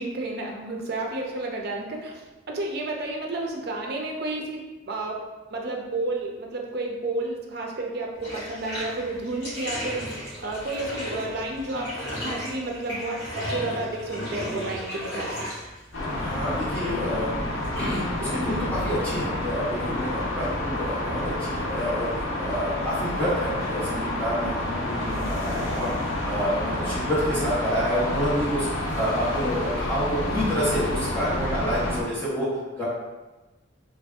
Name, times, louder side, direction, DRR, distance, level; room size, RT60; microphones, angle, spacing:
voice 1, 0.0-5.2 5.5-15.4, right 2 dB, 55° right, 0 dB, 0.5 m, -31 dB
Bathtub (filling or washing), 8.2-19.8, equal, 60° left, 1.4 m, -36 dB
sound 1, 15.9-32.0, left 1 dB, 90° left, 0.6 m, -29 dB
voice 2, 16.2-17.3 17.7-32.5 32.7-32.8, equal, 10° left, -10 dB, 0.8 m, -28 dB
3.3 x 2.6 x 2.2 m, 1.1 s
head